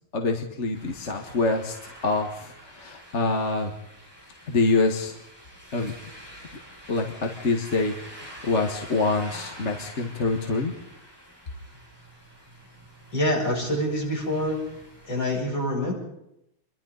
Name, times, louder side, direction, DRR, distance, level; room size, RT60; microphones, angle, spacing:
voice 1, 0.1-3.7 4.5-5.2 5.7-5.9 6.9-10.7, left 3 dB, 35° left, 2 dB, 1.9 m, -26 dB
sound 1, 0.7-15.4, equal, 10° right, 7.4 m, -47 dB
voice 2, 13.1-14.7 15.0-15.9, left 1 dB, 60° left, -2 dB, 8.3 m, -26 dB
28.0 x 23.0 x 4.1 m, 0.81 s
omnidirectional pair, 2.3 m